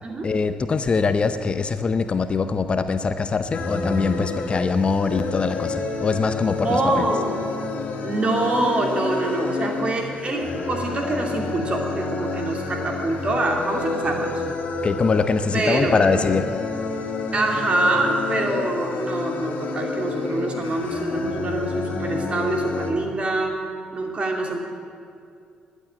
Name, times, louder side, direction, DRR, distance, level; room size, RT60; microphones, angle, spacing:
voice 1, 0.2-7.0 14.8-16.6, left 4 dB, 40° left, 10 dB, 0.7 m, -23 dB
sound 1, 3.5-22.9, left 3 dB, 65° left, 1.9 m, -29 dB
voice 2, 6.6-7.5 8.0-14.3 15.5-16.0 17.3-23.6 23.9-24.6, right 2 dB, 40° right, 2 dB, 2.6 m, -25 dB
11.5 x 8.3 x 9.7 m, 2.3 s
supercardioid pair, 75°, 3 cm